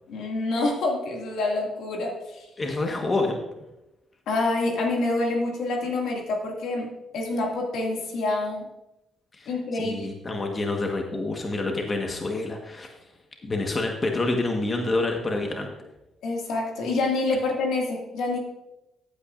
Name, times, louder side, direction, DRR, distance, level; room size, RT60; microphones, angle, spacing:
voice 1, 0.1-2.5 4.3-6.9 7.1-8.7 9.5-10.1 16.2-18.4, left 2 dB, 80° left, 0 dB, 2.2 m, -27 dB
voice 2, 2.6-3.4 9.3-12.9 13.4-15.7, left 2 dB, 30° left, 2 dB, 1.4 m, -27 dB
14.0 x 8.7 x 2.6 m, 0.92 s
cardioid pair, 90°, 0 cm